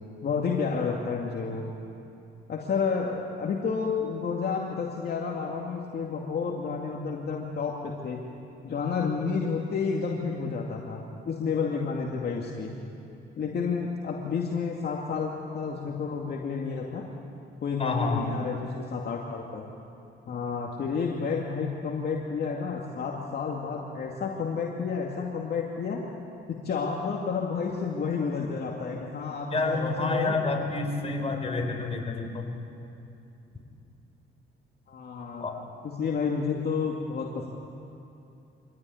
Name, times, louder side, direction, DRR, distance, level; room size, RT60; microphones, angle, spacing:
voice 1, 0.2-1.7 2.5-8.2 8.6-11.0 11.3-12.7 13.4-17.1 17.6-19.6 20.3-26.0 26.5-30.4 34.9-35.5 35.8-37.5, left 5 dB, 55° left, -1 dB, 2.4 m, -30 dB
voice 2, 17.8-18.3 29.5-32.5 35.4-35.6, left 3 dB, 30° left, 2 dB, 4.5 m, -28 dB
25.5 x 17.0 x 9.6 m, 2.8 s
cardioid pair, 90°, 20 cm